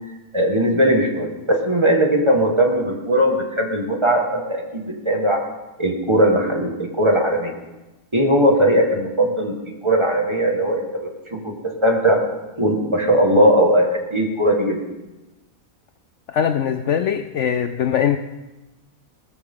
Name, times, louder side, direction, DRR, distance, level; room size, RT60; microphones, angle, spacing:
voice 1, 0.3-5.5 5.8-7.5 8.1-9.6 9.8-11.5 11.8-12.3 12.6-14.8, right 1 dB, 20° right, 1 dB, 1.8 m, -19 dB
voice 2, 16.3-18.2, left 8 dB, 65° left, 9 dB, 0.8 m, -21 dB
19.0 x 14.0 x 3.8 m, 1.1 s
omnidirectional pair, 1.5 m